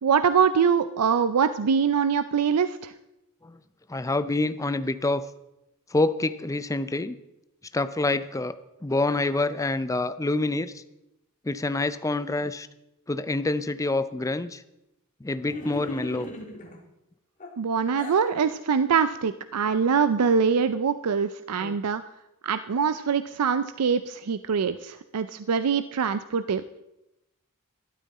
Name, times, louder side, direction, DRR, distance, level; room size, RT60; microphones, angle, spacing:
voice 1, 0.0-2.9 17.6-22.0 22.4-26.6, right 6 dB, 90° right, 12 dB, 0.5 m, -24 dB
voice 2, 3.9-5.2 5.9-7.2 7.7-8.6 8.8-10.8 11.4-12.7 13.1-14.6 15.2-16.3 21.6-21.8, left 2 dB, 15° left, 13 dB, 0.5 m, -27 dB
sound 1, 15.4-16.8 17.4-18.3, left 1 dB, 35° left, 2.1 m, -37 dB
12.5 x 12.5 x 4.1 m, 0.90 s
head